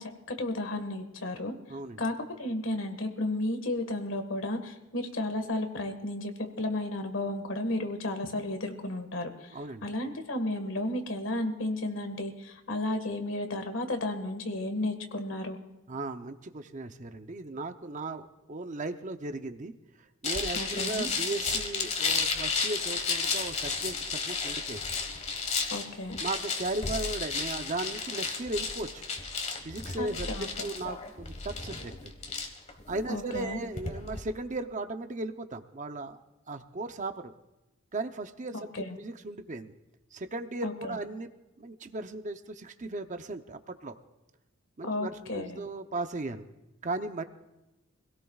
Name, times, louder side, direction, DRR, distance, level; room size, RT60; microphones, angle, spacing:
voice 1, 0.0-1.5 2.0-2.1 2.4-15.6 20.5-21.1 25.7-26.2 30.0-30.7 33.1-33.6 38.5-39.0 40.6-41.0 44.8-45.6, left 1 dB, 65° left, 7 dB, 1.6 m, -33 dB
voice 2, 1.7-2.0 9.5-9.8 15.9-19.7 20.0-24.9 26.2-29.0 29.6-31.9 32.9-36.2 36.5-37.3 37.9-39.7 40.1-41.3 41.6-44.0 44.8-46.5 46.8-47.2, right 2 dB, 35° right, 8 dB, 0.7 m, -36 dB
sound 1, 20.2-34.2, left 4 dB, 35° left, 1.4 m, -33 dB
25.5 x 17.0 x 2.4 m, 1.0 s
head